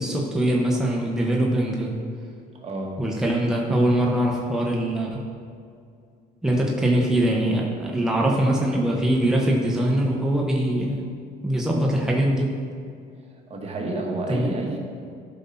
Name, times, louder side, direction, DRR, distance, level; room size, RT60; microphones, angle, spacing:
voice 1, 0.0-1.9 3.0-5.2 6.4-11.1 11.4-12.5 14.3-14.7, right 1 dB, 5° right, -2 dB, 1.1 m, -22 dB
voice 2, 2.5-3.0 13.5-14.8, right 2 dB, 40° right, 0 dB, 1.6 m, -30 dB
12.0 x 5.5 x 4.2 m, 2.3 s
cardioid pair, 110°, 17 cm